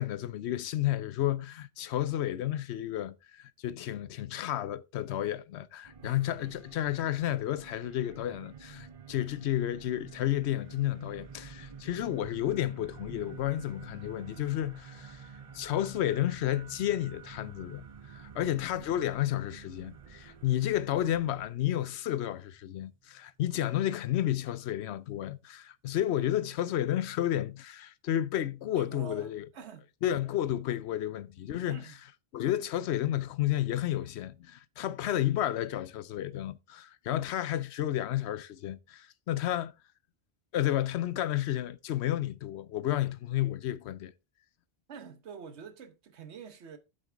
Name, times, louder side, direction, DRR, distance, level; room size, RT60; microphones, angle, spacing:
voice 1, 0.0-15.2 15.5-29.4 30.0-31.8 32.3-39.7 40.5-44.1, left 12 dB, 80° left, 0.9 m, -31 dB
sound 1, 5.8-21.5, right 7 dB, 40° right, 0.5 m, -51 dB
voice 2, 6.0-6.5 18.3-18.6 28.7-29.9 31.7-32.0 44.9-46.8, right 6 dB, 80° right, 1.2 m, -47 dB
sound 2, 9.9-23.4, right 4 dB, 10° right, 1.0 m, -54 dB
7.8 x 7.7 x 3.4 m
omnidirectional pair, 1.1 m